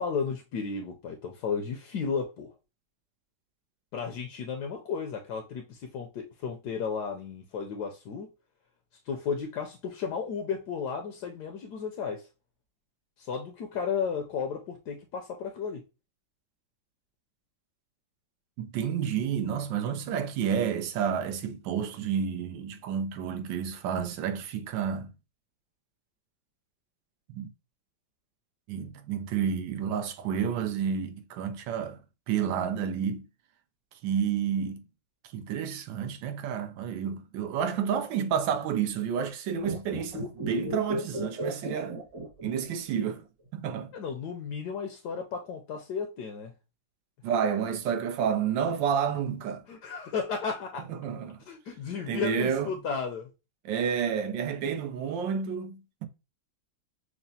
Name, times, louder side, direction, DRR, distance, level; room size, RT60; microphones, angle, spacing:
voice 1, 0.0-2.5 3.9-8.3 9.1-12.3 13.2-15.8 43.9-46.5 49.7-50.9 51.5-53.3, left 6 dB, 75° left, 1.1 m, -34 dB
voice 2, 18.6-25.1 27.3-27.5 28.7-33.2 34.0-34.8 35.3-42.0 42.4-43.3 43.5-43.9 47.2-49.7 50.9-51.4 52.1-52.8 53.6-56.1, right 7 dB, 90° right, 1.4 m, -30 dB
sound 1, 39.5-43.0 43.2-43.3, right 1 dB, 70° right, 2.4 m, -35 dB
6.0 x 2.1 x 2.7 m
omnidirectional pair, 2.0 m